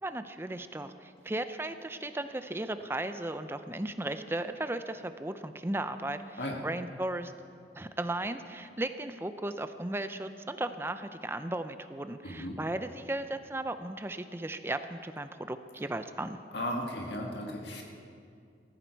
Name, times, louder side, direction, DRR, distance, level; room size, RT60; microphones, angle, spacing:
voice 1, 0.0-7.3 7.8-16.4, right 1 dB, 15° right, 10 dB, 0.5 m, -36 dB
voice 2, 12.2-12.6 16.5-17.8, left 1 dB, 70° left, 0 dB, 1.8 m, -35 dB
19.0 x 14.5 x 4.6 m, 2.4 s
head